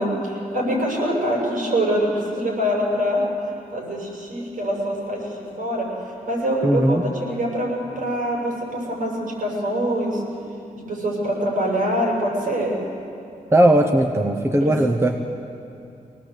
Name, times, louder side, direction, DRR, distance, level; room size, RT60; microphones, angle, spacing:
voice 1, 0.0-3.2 3.7-5.9 6.2-10.2 10.7-12.7 14.6-14.7, equal, 75° right, -2 dB, 6.9 m, -24 dB
voice 2, 6.6-7.0 13.5-15.2, right 1 dB, 20° right, 4 dB, 1.0 m, -18 dB
23.5 x 18.5 x 8.1 m, 2.6 s
wide cardioid pair, 135°, 14 cm